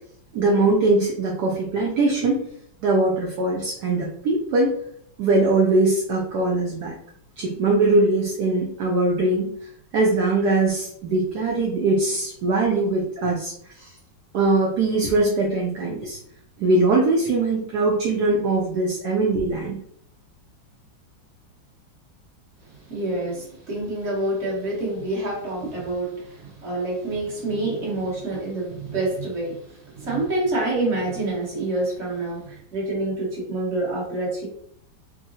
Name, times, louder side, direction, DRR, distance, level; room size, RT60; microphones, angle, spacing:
voice 1, 0.3-2.4 2.8-4.7 5.2-6.9 7.4-9.5 9.9-13.9 14.3-16.2 16.6-19.8, right 2 dB, 75° right, -1 dB, 1.0 m, -21 dB
voice 2, 22.6-34.5, right 2 dB, 40° right, -4 dB, 1.2 m, -27 dB
3.7 x 2.1 x 2.6 m, 0.66 s
omnidirectional pair, 2.1 m